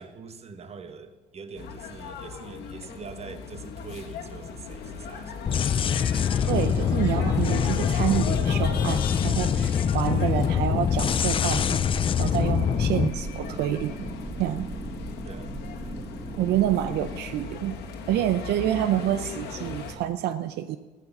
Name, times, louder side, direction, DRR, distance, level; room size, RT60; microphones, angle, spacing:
voice 1, 0.0-5.8 12.7-13.3 15.2-15.6, right 5 dB, 40° right, 8 dB, 1.3 m, -44 dB
sound 1, 1.5-19.9, left 5 dB, 80° left, 1.8 m, -38 dB
sound 2, 5.5-13.1, left 8 dB, 30° left, 0.4 m, -24 dB
sound 3, 6.3-17.2, right 1 dB, 10° right, 1.5 m, -38 dB
voice 2, 6.5-11.8 12.2-14.0 14.4-14.7 16.4-17.8 18.1-20.8, right 12 dB, 75° right, 10 dB, 0.6 m, -27 dB
14.0 x 8.3 x 7.3 m, 1.2 s
cardioid pair, 110°, 17 cm